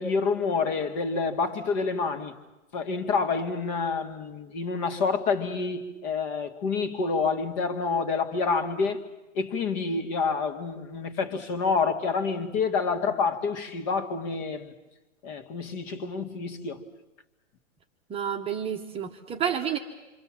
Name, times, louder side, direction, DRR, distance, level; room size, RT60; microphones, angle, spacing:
voice 1, 0.0-2.3 2.7-9.0 9.3-14.7 15.2-16.8, left 4 dB, 35° left, 2.3 m, -28 dB
voice 2, 18.1-19.8, right 8 dB, 15° right, 1.2 m, -30 dB
27.0 x 25.5 x 7.6 m
hypercardioid pair, 145°, 40 cm